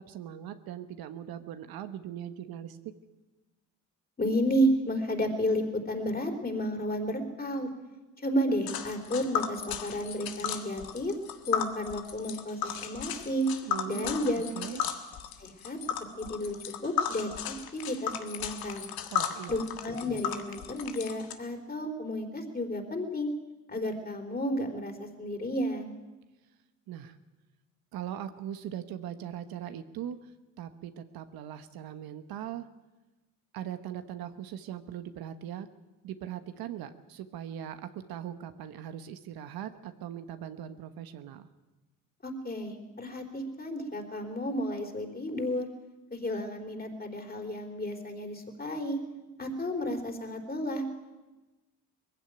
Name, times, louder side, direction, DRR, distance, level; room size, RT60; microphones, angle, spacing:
voice 1, 0.0-3.0 13.6-14.1 14.5-14.8 19.1-19.6 26.9-27.1 27.9-30.2 30.6-32.7 33.5-35.7 36.0-41.5, right 10 dB, 80° right, 9 dB, 1.3 m, -40 dB
voice 2, 4.2-7.7 8.2-11.1 11.5-13.5 13.9-14.5 15.4-15.8 16.2-16.6 16.8-18.9 19.5-23.3 23.7-25.9 42.2-45.7 46.1-49.0 49.4-50.8, equal, 25° left, 3 dB, 4.0 m, -32 dB
Tick, 8.7-21.3, left 9 dB, 80° left, 1.7 m, -35 dB
20.0 x 15.5 x 9.1 m, 1.1 s
cardioid pair, 75°, 36 cm